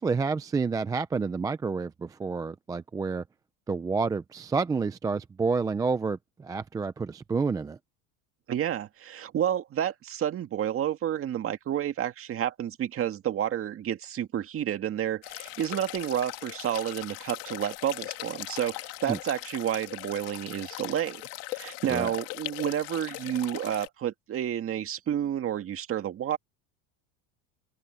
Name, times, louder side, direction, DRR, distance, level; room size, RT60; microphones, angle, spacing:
voice 1, 0.0-3.2 3.7-7.8 19.1-19.2 21.9-22.1, right 4 dB, 10° right, 0.3 m, -29 dB
voice 2, 8.5-21.2 21.5-26.4, right 10 dB, 30° right, 1.9 m, -30 dB
sound 1, 15.2-23.9, left 22 dB, 65° left, 2.3 m, -40 dB
open air
cardioid pair, 145°, 42 cm